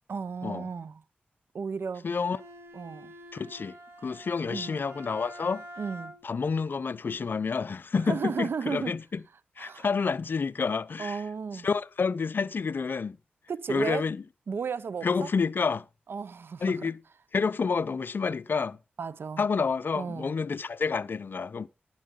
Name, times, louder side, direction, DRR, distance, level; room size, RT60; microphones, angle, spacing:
voice 1, 0.1-1.0 1.5-2.1 2.7-3.1 4.5-4.7 5.8-6.2 8.1-8.9 9.6-9.8 11.0-11.7 13.5-14.1 14.5-15.3 16.1-16.9 19.0-19.4 20.0-20.3, right 5 dB, 70° right, 0.7 m, -34 dB
voice 2, 2.0-2.4 3.3-3.8 4.0-5.6 6.2-9.2 9.6-11.2 11.6-13.2 13.7-14.2 15.0-15.9 16.6-17.0 17.3-18.8 19.4-21.7, left 5 dB, 60° left, 0.6 m, -29 dB
Bowed string instrument, 2.1-6.5, right 1 dB, 85° right, 2.6 m, -47 dB
11.5 x 10.5 x 3.7 m
cardioid pair, 60°, 4 cm